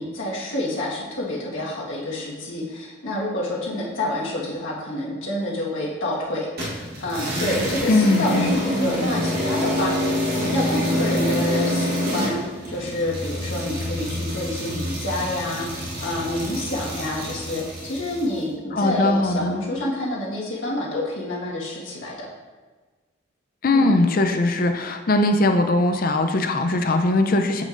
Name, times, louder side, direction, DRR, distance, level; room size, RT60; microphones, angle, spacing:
voice 1, 0.0-9.9 10.3-22.3 23.7-23.9, left 1 dB, 80° left, -4 dB, 1.6 m, -28 dB
sound 1, 6.6-18.3, equal, 50° right, 1.4 m, -26 dB
voice 2, 7.9-8.6 18.7-19.6 23.6-27.6, left 2 dB, 45° left, 6 dB, 0.5 m, -20 dB
7.6 x 6.1 x 2.6 m, 1.3 s
head